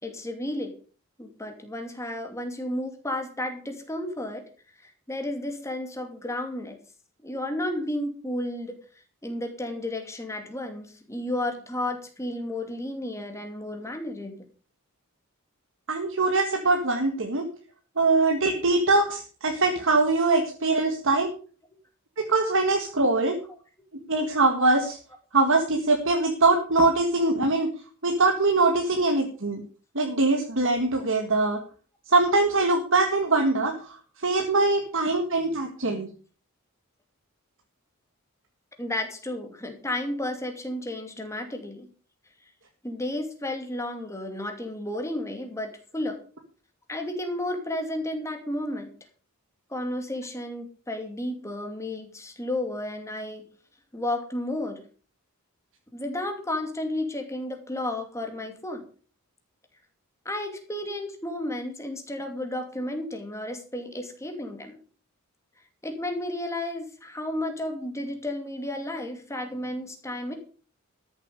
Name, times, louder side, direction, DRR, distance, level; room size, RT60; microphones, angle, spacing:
voice 1, 0.0-0.7 1.2-4.4 4.8-6.8 7.2-8.8 9.2-14.5 38.8-41.9 42.8-46.2 46.9-48.9 49.7-53.4 53.9-54.8 55.9-58.8 60.2-64.8 65.8-70.3, left 1 dB, 15° left, 4 dB, 2.5 m, -32 dB
voice 2, 15.9-17.4 18.0-21.3 22.2-23.4 24.1-25.0 25.3-27.7 28.0-29.6 29.9-31.6 32.1-33.7 34.2-36.1, right 3 dB, 60° right, 3 dB, 1.8 m, -22 dB
13.5 x 7.5 x 6.7 m, 0.40 s
head